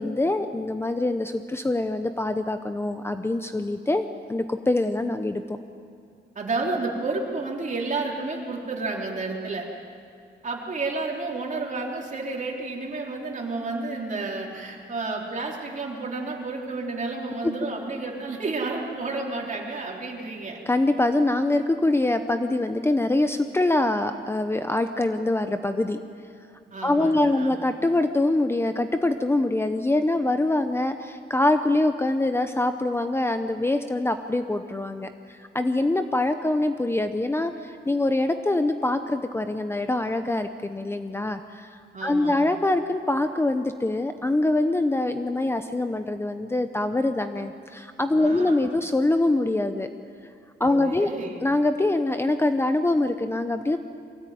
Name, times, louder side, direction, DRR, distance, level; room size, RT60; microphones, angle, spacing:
voice 1, 0.0-5.6 20.7-26.0 26.8-41.7 42.0-49.9 50.6-51.1 51.4-53.8, left 2 dB, 15° left, 8 dB, 0.7 m, -24 dB
voice 2, 6.4-9.7 10.4-20.6 26.7-27.6 41.9-42.4 48.2-48.6 50.7-51.4, right 3 dB, 40° right, -1 dB, 3.6 m, -31 dB
23.5 x 16.5 x 9.3 m, 2.4 s
wide cardioid pair, 135°, 19 cm